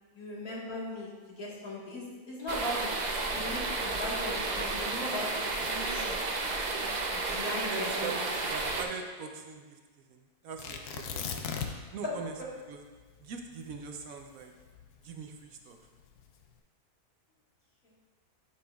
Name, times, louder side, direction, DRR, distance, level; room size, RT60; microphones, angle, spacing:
voice 1, 0.2-1.1 1.4-3.0 3.3-6.2 7.1-8.2, left 1 dB, 70° left, -5 dB, 2.0 m, -38 dB
sound 1, 2.5-8.8, right 3 dB, 55° right, 0.5 m, -32 dB
voice 2, 7.7-9.8 10.1-12.8 13.2-14.5 15.0-15.8, right 5 dB, 70° right, 4 dB, 1.0 m, -42 dB
Tearing, 10.6-12.0 12.3-12.4 12.9-15.3 16.0-16.4, left 7 dB, 90° left, 1.2 m, -37 dB
10.5 x 5.7 x 2.3 m, 1.4 s
omnidirectional pair, 1.6 m